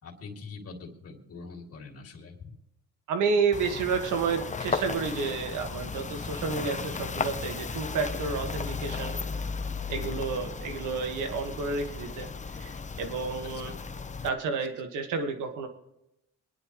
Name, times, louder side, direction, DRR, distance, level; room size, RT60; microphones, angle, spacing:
voice 1, 0.0-2.5 9.9-10.2 13.7-13.8, left 4 dB, 50° left, 1 dB, 2.8 m, -43 dB
voice 2, 3.1-9.2 9.9-12.3 12.6-13.7 14.2-15.7, right 5 dB, 85° right, 6 dB, 1.8 m, -30 dB
sound 1, 3.5-14.3, left 4 dB, 25° left, 0.8 m, -35 dB
25.0 x 10.5 x 3.2 m, 0.85 s
cardioid pair, 90°, 30 cm